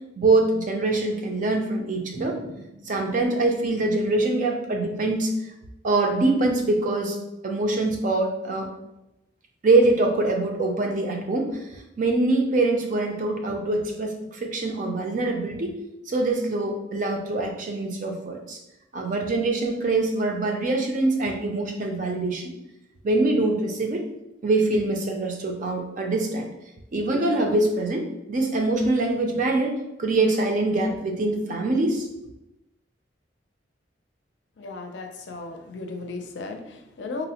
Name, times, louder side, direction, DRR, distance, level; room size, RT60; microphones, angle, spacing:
voice 1, 0.2-5.3 5.8-7.2 7.4-8.7 9.6-15.8 16.1-18.6 18.9-22.5 23.0-24.1 24.4-26.5 26.9-32.3, right 2 dB, 45° right, 2 dB, 0.5 m, -24 dB
voice 2, 34.6-37.3, left 3 dB, 70° left, 4 dB, 0.4 m, -35 dB
4.0 x 2.0 x 2.8 m, 0.90 s
head